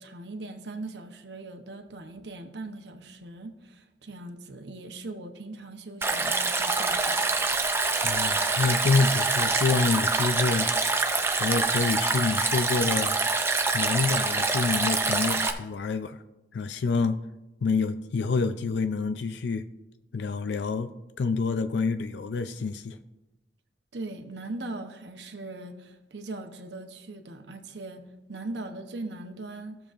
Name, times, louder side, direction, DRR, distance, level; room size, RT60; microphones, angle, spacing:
voice 1, 0.0-7.3 23.9-29.8, right 2 dB, 80° right, 6 dB, 0.8 m, -40 dB
Stream, 6.0-15.5, right 3 dB, 15° right, 0.4 m, -25 dB
voice 2, 7.9-11.0 11.4-13.2 13.7-16.2 16.5-17.2 17.6-19.6 20.1-20.9 21.2-23.0, left 4 dB, 80° left, 10 dB, 0.4 m, -27 dB
15.5 x 6.8 x 2.5 m, 1.0 s
head